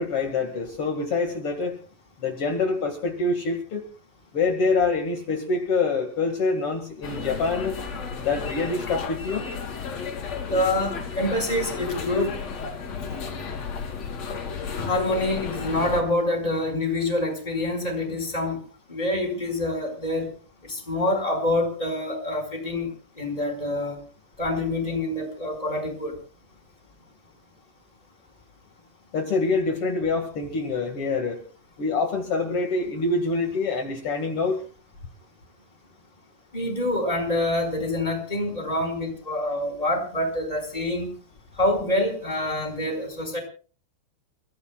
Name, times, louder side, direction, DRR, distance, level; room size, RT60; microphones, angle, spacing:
voice 1, 0.0-1.8 2.2-3.8 4.3-7.8 8.2-9.5 29.1-31.4 31.8-34.6, left 3 dB, 60° left, 3 dB, 1.5 m, -25 dB
sound 1, 7.0-16.0, left 5 dB, 40° left, 3.2 m, -33 dB
voice 2, 10.5-12.3 14.8-18.6 18.9-20.3 20.6-22.9 23.2-24.0 24.4-26.1 36.5-41.1 41.6-43.4, left 1 dB, 10° left, 2 dB, 4.3 m, -26 dB
30.0 x 15.5 x 2.3 m, 0.37 s
omnidirectional pair, 5.8 m